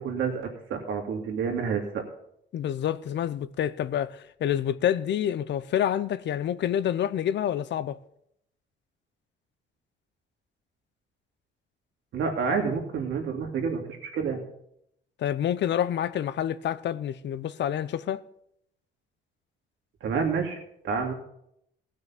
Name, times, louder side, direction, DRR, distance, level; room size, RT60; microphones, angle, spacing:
voice 1, 0.0-2.0 12.1-14.4 20.0-20.6 20.8-21.1, right 5 dB, 80° right, 2.6 m, -29 dB
voice 2, 2.5-8.0 15.2-18.2, left 10 dB, 65° left, 0.7 m, -28 dB
16.0 x 6.4 x 5.8 m
cardioid pair, 90°, 20 cm